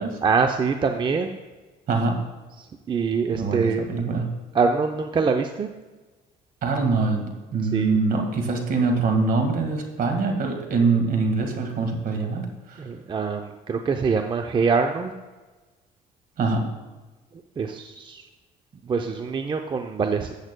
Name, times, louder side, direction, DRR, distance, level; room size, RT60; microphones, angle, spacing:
voice 1, 0.2-1.3 2.9-3.9 4.5-5.7 7.7-8.0 12.8-15.1 17.6-18.2 18.8-20.3, right 5 dB, 30° right, 5 dB, 0.5 m, -24 dB
voice 2, 3.3-4.3 6.6-12.9 16.4-16.6, right 4 dB, 55° right, 3 dB, 1.7 m, -24 dB
13.5 x 7.9 x 2.2 m, 1.3 s
cardioid pair, 110°, 17 cm